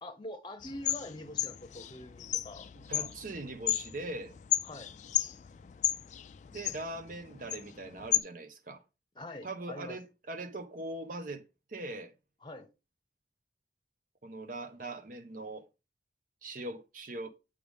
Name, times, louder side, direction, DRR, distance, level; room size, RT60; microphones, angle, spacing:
voice 1, 0.0-3.1 4.6-4.9 9.1-10.0 12.4-12.7, left 1 dB, 25° left, 0.8 m, -45 dB
sound 1, 0.6-8.2, left 12 dB, 40° left, 0.3 m, -34 dB
voice 2, 2.7-4.3 6.5-8.8 9.4-11.4 11.7-12.1 14.2-15.7 16.4-17.3, right 2 dB, 45° right, 0.8 m, -41 dB
6.7 x 5.0 x 3.6 m
head